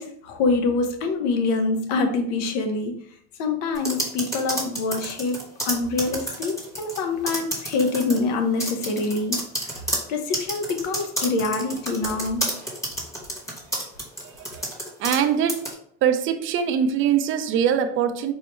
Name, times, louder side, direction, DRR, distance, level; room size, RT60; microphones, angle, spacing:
voice 1, 0.0-3.0 3.4-9.8 10.1-12.6, left 3 dB, 70° left, 0.8 m, -25 dB
sound 1, 3.8-7.0 7.3-8.2 8.6-15.2 15.5-15.7, right 1 dB, 10° left, 0.9 m, -29 dB
voice 2, 14.2-14.7 15.0-15.7 16.0-18.3, right 8 dB, 40° right, 0.4 m, -23 dB
4.5 x 2.1 x 3.1 m
supercardioid pair, 120°, 34 cm